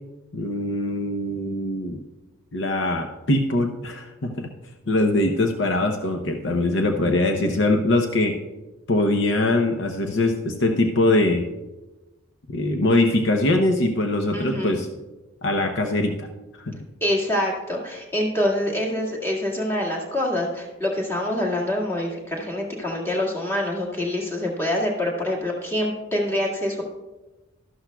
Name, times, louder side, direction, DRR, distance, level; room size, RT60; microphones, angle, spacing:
voice 1, 0.3-2.0 2.5-4.5 4.9-8.4 8.9-11.5 12.5-14.9 15.4-16.3 16.6-16.7, left 2 dB, 60° left, 4 dB, 0.7 m, -22 dB
voice 2, 14.3-14.8 17.0-26.8, left 1 dB, 10° left, -3 dB, 1.8 m, -25 dB
12.5 x 12.0 x 2.3 m, 1.1 s
head